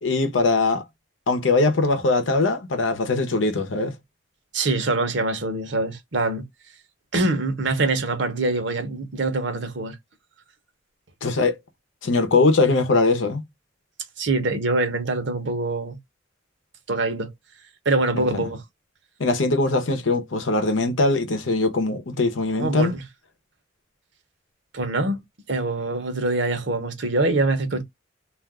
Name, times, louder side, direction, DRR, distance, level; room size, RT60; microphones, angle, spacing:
voice 1, 0.0-0.8 1.3-3.9 11.2-11.6 12.0-13.4 18.1-18.5 19.2-22.9, left 3 dB, 80° left, 0.8 m, -21 dB
voice 2, 4.5-6.4 7.1-9.9 14.2-16.0 16.9-17.3 17.8-18.6 22.6-23.0 24.7-25.2 25.5-27.8, right 2 dB, 65° right, 0.9 m, -24 dB
2.5 x 2.2 x 3.5 m
head